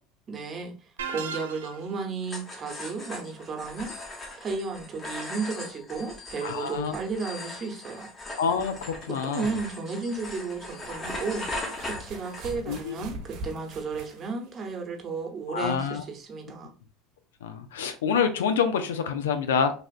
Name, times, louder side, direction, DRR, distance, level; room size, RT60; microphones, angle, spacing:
voice 1, 0.3-8.1 9.2-16.7, right 4 dB, 35° right, 2 dB, 0.9 m, -34 dB
sound 1, 1.0-2.0, right 6 dB, 90° right, 0.4 m, -35 dB
sound 2, 2.2-12.8, left 2 dB, 30° left, 0.9 m, -39 dB
voice 2, 6.4-6.9 8.4-9.5 12.7-13.1 15.5-16.0 17.4-19.7, left 6 dB, 85° left, 8 dB, 0.4 m, -27 dB
sound 3, 8.5-8.6 10.6-14.9 15.9-16.0, right 1 dB, 60° right, 0.7 m, -42 dB
3.3 x 2.4 x 2.4 m, 0.37 s
hypercardioid pair, 85°, 0 cm